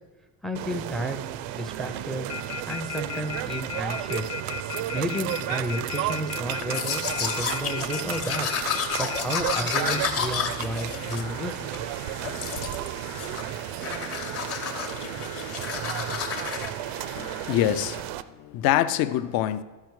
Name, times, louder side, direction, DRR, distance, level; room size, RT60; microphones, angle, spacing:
voice 1, 0.4-1.2 1.5-2.3 2.7-4.3 4.9-8.5 9.0-11.5, right 1 dB, ahead, 0.4 m, -32 dB
sound 1, 0.5-18.2, right 13 dB, 80° right, 0.5 m, -33 dB
sound 2, 2.3-10.0 10.6-18.0, left 6 dB, 80° left, 0.9 m, -38 dB
Domestic sounds home sounds, 6.6-11.8 12.2-12.9 13.2-13.5 13.8-16.7, left 6 dB, 35° left, 0.8 m, -31 dB
voice 2, 17.0-18.1 18.4-19.6, left 12 dB, 60° left, 0.5 m, -25 dB
13.0 x 5.1 x 4.6 m
cardioid pair, 155°, 42 cm